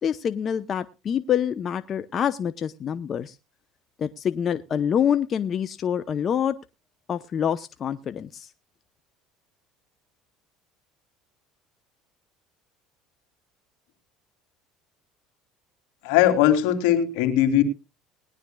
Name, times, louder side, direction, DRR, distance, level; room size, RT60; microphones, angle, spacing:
voice 1, 0.0-3.4 4.0-6.6 7.1-8.5, left 8 dB, 40° left, 0.7 m, -26 dB
voice 2, 16.0-17.6, left 11 dB, 80° left, 2.9 m, -19 dB
20.5 x 11.0 x 2.3 m
supercardioid pair, 100°, 0 cm